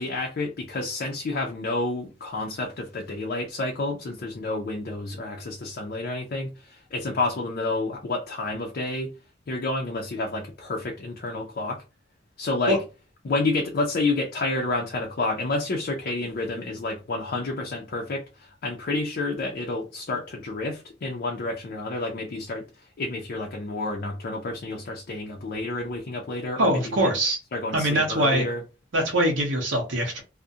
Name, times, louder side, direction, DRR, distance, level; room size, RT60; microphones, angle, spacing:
voice 1, 0.0-9.1 9.5-11.8 12.4-12.8 13.2-22.6 23.0-27.1 27.5-28.6, left 2 dB, 50° left, 0.4 m, -29 dB
voice 2, 26.6-27.4 27.7-28.5 28.9-30.2, right 1 dB, 80° right, 0.7 m, -23 dB
2.4 x 2.1 x 2.6 m
head